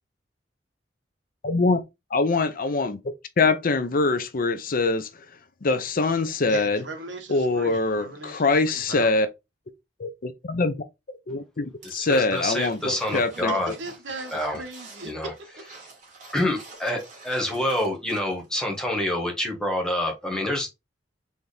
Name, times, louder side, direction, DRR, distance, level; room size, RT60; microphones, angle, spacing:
voice 1, 1.4-1.8 2.1-3.0 3.4-5.1 5.6-6.8 7.3-9.3 10.0-10.7 11.3-13.5, left 3 dB, 50° left, 0.6 m, -23 dB
voice 2, 6.5-9.1 13.4-15.1 15.6-15.7, right 2 dB, 80° right, 1.1 m, -38 dB
voice 3, 11.8-13.7 14.3-14.6 15.0-15.3 16.3-20.7, left 1 dB, 5° left, 1.3 m, -27 dB
sound 1, 11.8-18.5 18.7-18.8, right 3 dB, 45° right, 2.4 m, -47 dB
4.2 x 3.5 x 3.3 m
head